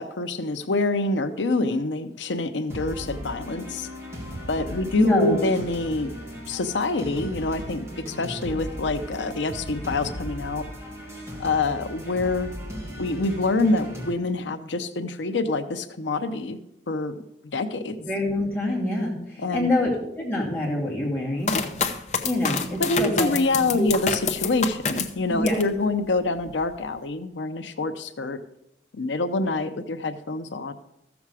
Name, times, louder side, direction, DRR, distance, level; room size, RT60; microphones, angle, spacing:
voice 1, 0.0-3.9 4.5-6.1 6.5-10.6 11.4-12.5 13.0-16.6 16.9-17.2 17.5-18.0 19.4-19.8 22.8-28.4 28.9-30.7, left 2 dB, 90° left, 9 dB, 0.7 m, -26 dB
sound 1, 2.7-14.1, equal, 15° right, 2.5 m, -37 dB
voice 2, 5.0-5.4 18.1-21.6 22.2-23.3 23.6-23.9 25.3-25.6, left 1 dB, 10° left, -5 dB, 2.6 m, -25 dB
sound 2, 21.4-25.7 26.2-26.8, left 5 dB, 40° left, 0.8 m, -28 dB
14.5 x 7.1 x 4.8 m, 0.81 s
head